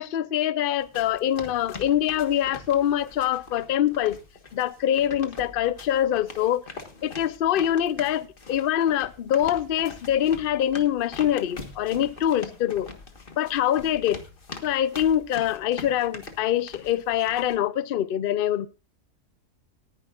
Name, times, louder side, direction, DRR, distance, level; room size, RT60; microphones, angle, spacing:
voice 1, 0.0-4.2 4.5-6.6 7.0-12.9 13.4-14.2 14.6-18.7, left 11 dB, 60° left, 0.6 m, -24 dB
sound 1, 0.8-17.6, left 4 dB, 35° left, 1.6 m, -43 dB
18.5 x 10.5 x 2.5 m
omnidirectional pair, 1.7 m